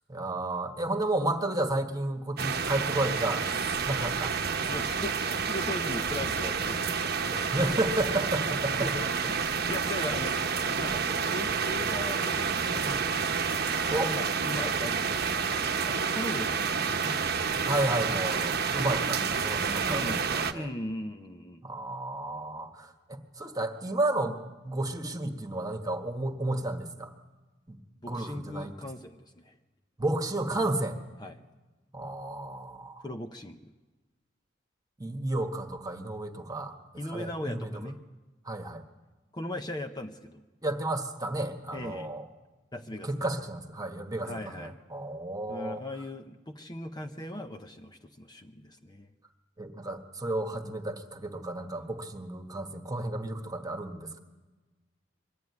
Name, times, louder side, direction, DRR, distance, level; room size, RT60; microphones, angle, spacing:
voice 1, 0.1-3.5 3.7-4.8 7.5-8.9 13.9-14.1 17.6-20.7 21.6-24.4 24.6-27.1 27.7-27.8 28.1-28.7 30.0-31.0 31.9-33.1 35.0-36.7 37.0-37.8 38.4-38.8 40.6-42.2 43.0-45.8 49.6-54.2, right 1 dB, 20° right, 5 dB, 1.5 m, -32 dB
sound 1, 2.4-20.5, right 6 dB, 55° right, 1.0 m, -29 dB
voice 2, 4.7-7.6 8.8-10.4 10.7-13.5 13.9-17.3 19.8-20.2 20.5-21.7 28.0-29.6 31.2-31.4 33.0-33.7 37.0-38.0 39.3-40.4 41.7-42.1 42.7-43.2 44.2-44.8 45.5-49.1, left 1 dB, 20° left, 5 dB, 0.8 m, -39 dB
23.0 x 13.5 x 9.6 m, 1.2 s
head